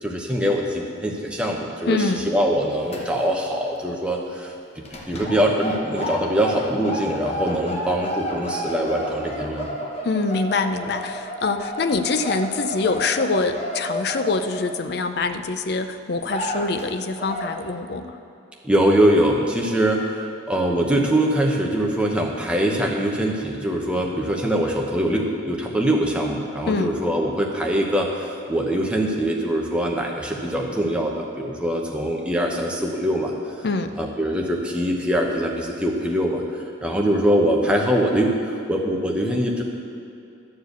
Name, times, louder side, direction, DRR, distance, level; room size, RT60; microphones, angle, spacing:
voice 1, 0.0-9.8 18.6-20.1 20.5-33.3 34.0-36.4 36.8-39.6, right 1 dB, 5° right, -1 dB, 0.9 m, -23 dB
voice 2, 1.9-2.3 10.0-18.2 26.7-26.9 33.6-33.9, left 3 dB, 55° left, 9 dB, 0.5 m, -24 dB
sound 1, 2.5-3.5 3.8-4.0 4.9-15.3 15.8-15.9 16.2-16.9 17.2-17.6, equal, 30° left, 0.9 m, -31 dB
11.5 x 4.7 x 8.1 m, 2.7 s
head